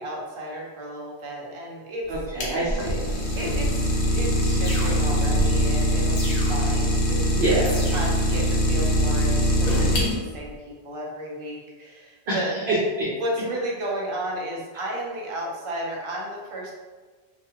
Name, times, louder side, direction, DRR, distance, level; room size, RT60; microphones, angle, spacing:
voice 1, 0.0-2.1 3.3-12.6 13.2-16.7, right 1 dB, 45° right, -2 dB, 0.4 m, -33 dB
Idling, 2.1-10.4, equal, 80° left, 0.9 m, -22 dB
voice 2, 2.1-3.4 7.3-7.8 12.3-12.7, right 2 dB, 70° right, -7 dB, 0.9 m, -27 dB
sound 1, 3.4-3.9 4.7-5.4 6.2-6.9 7.7-8.4 9.7-10.4, left 1 dB, 45° left, 0.6 m, -36 dB
2.4 x 2.2 x 2.8 m, 1.3 s
omnidirectional pair, 1.1 m